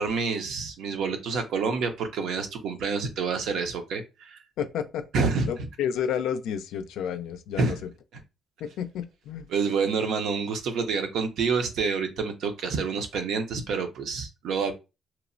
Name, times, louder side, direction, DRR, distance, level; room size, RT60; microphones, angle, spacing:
voice 1, 0.0-4.4 5.1-5.5 7.6-7.8 9.5-14.7, right 5 dB, 80° right, 0.5 m, -28 dB
voice 2, 4.6-5.0 5.5-7.8 8.6-9.5, left 8 dB, 85° left, 0.3 m, -31 dB
2.9 x 2.0 x 2.5 m
cardioid pair, 90°, 0 cm